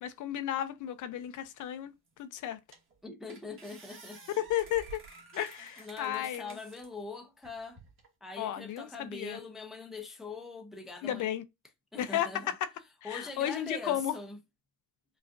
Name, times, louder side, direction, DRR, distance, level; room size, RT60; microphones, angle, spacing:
voice 1, 0.0-1.9 2.2-2.6 4.4-5.0 5.3-6.6 8.4-9.4 11.0-11.4 12.0-12.7 13.0-14.2, left 11 dB, 50° left, 0.5 m, -33 dB
Noisy Door, 2.1-2.2 2.7-3.0 3.3-6.9 7.4-8.1, right 4 dB, 30° right, 1.4 m, -52 dB
voice 2, 3.0-4.2 5.8-7.8 8.2-11.3 11.9-12.5 13.0-14.4, left 3 dB, ahead, 0.5 m, -43 dB
5.1 x 2.4 x 2.5 m
cardioid pair, 135°, 40 cm